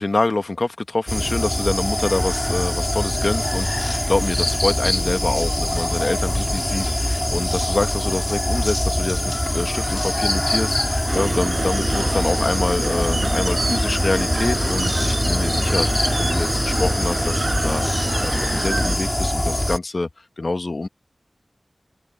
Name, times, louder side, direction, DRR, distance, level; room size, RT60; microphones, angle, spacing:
voice 1, 0.0-17.8 18.2-20.1 20.4-20.9, left 2 dB, 55° left, 1.3 m, -26 dB
sound 1, 1.1-19.8, left 1 dB, 20° left, 2.4 m, -23 dB
sound 2, 11.1-19.0, right 4 dB, 90° right, 4.9 m, -28 dB
wide cardioid pair, 65°, 0 cm